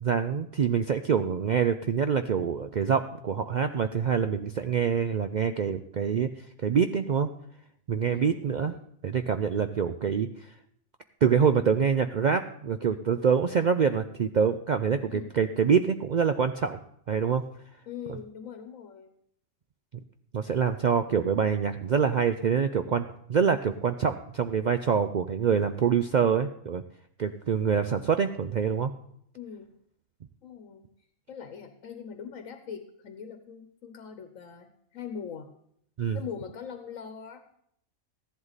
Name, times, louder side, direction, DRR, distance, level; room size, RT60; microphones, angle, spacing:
voice 1, 0.0-6.3 6.6-7.3 7.9-8.7 9.0-10.3 11.2-16.8 17.1-17.4 20.3-26.8 27.2-28.9 36.0-36.2, right 7 dB, 70° right, 9 dB, 0.4 m, -25 dB
voice 2, 8.1-8.9 15.1-15.3 17.9-19.1 29.3-29.7 30.4-30.9 31.3-35.5 36.1-37.4, left 7 dB, 80° left, 8 dB, 1.3 m, -41 dB
14.5 x 11.0 x 4.0 m, 0.69 s
omnidirectional pair, 1.4 m